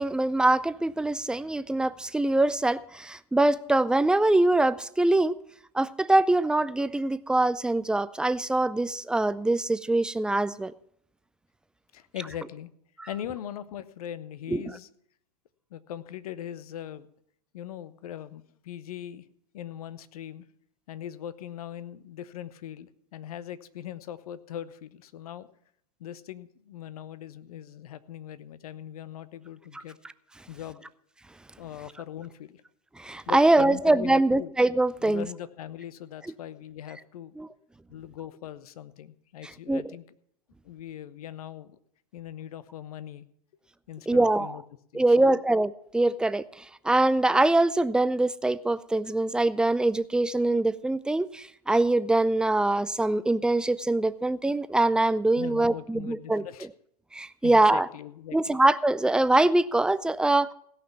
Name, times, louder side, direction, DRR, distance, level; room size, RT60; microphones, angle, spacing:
voice 1, 0.0-5.3 5.7-10.7 13.0-13.1 14.5-14.6 29.7-29.8 33.0-35.3 37.4-37.5 39.7-39.8 44.1-44.5 44.9-56.4 57.1-57.9 58.3-60.5, right 2 dB, 5° right, 0.5 m, -23 dB
voice 2, 11.9-12.7 13.1-14.9 15.7-17.1 17.5-19.3 19.5-20.5 20.9-25.5 26.0-30.0 30.5-30.9 31.6-32.6 33.3-34.5 35.0-37.3 37.9-40.0 40.6-41.8 42.1-43.2 43.9-44.6 44.9-45.4 55.4-56.7 57.4-58.6, left 11 dB, 70° left, 0.9 m, -40 dB
16.5 x 5.8 x 8.4 m
hypercardioid pair, 100°, 20 cm